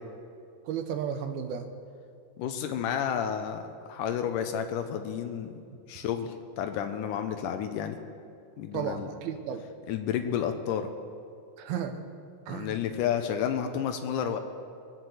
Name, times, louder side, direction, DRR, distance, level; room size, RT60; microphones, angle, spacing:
voice 1, 0.7-1.7 8.7-9.7 11.6-12.1 12.5-12.8, right 8 dB, 75° right, 7 dB, 2.5 m, -33 dB
voice 2, 2.4-3.6 3.9-5.5 5.9-8.0 8.6-9.1 9.9-10.9 12.5-14.4, left 8 dB, 85° left, 6 dB, 1.8 m, -31 dB
21.0 x 8.0 x 7.9 m, 2.4 s
omnidirectional pair, 4.7 m